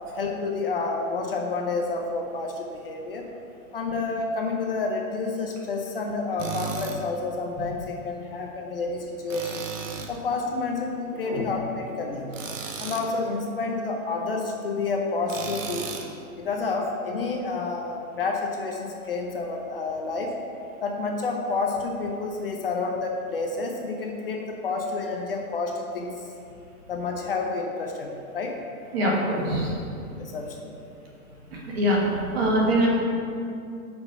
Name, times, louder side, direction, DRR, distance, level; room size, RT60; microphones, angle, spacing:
voice 1, 0.1-3.3 3.7-9.6 10.1-12.4 12.8-15.9 16.4-20.3 20.8-26.3 26.9-28.6 30.2-30.7, left 3 dB, 40° left, 1 dB, 0.5 m, -29 dB
Tools, 6.4-7.0 9.3-10.2 12.3-13.1 15.3-16.1, right 6 dB, 60° right, 0.9 m, -34 dB
voice 2, 28.9-29.7 31.5-32.0 32.3-32.9, equal, 45° right, -2 dB, 1.4 m, -23 dB
6.1 x 4.3 x 5.6 m, 2.6 s
hypercardioid pair, 160°, 44 cm